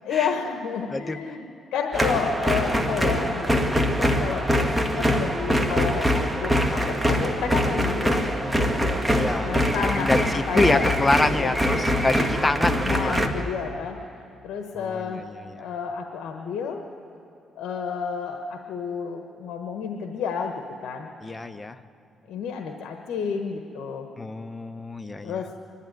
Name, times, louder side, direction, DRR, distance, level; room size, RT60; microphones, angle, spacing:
voice 1, 0.0-1.4 1.7-4.7 4.9-8.2 9.4-10.9 11.4-11.5 12.8-15.3 15.6-16.8 17.6-20.5 20.8-21.1 22.3-24.1 25.2-25.5, left 6 dB, 75° left, 4 dB, 1.2 m, -30 dB
sound 1, 1.9-13.3, equal, 5° right, 1.7 m, -23 dB
voice 2, 5.0-5.4 8.3-8.7 9.1-9.5 10.0-13.4 14.7-15.6 21.2-21.8 24.2-25.4, left 2 dB, 20° left, 11 dB, 0.9 m, -27 dB
25.0 x 11.5 x 9.3 m, 2.7 s
cardioid pair, 90°, 0 cm